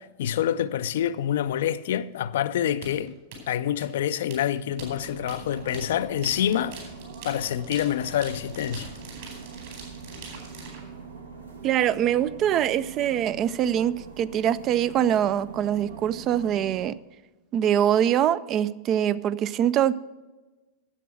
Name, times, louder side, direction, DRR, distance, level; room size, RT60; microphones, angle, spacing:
voice 1, 0.0-3.2 3.5-6.8 7.2-8.9, left 10 dB, 60° left, 0.4 m, -27 dB
sound 1, 2.8-10.8, right 4 dB, 55° right, 3.9 m, -43 dB
sound 2, 4.8-16.9, right 5 dB, 75° right, 1.2 m, -43 dB
voice 2, 11.6-17.0 17.5-19.9, right 10 dB, 35° right, 0.3 m, -23 dB
9.9 x 7.6 x 7.6 m
figure-of-eight pair, 90°, 0 cm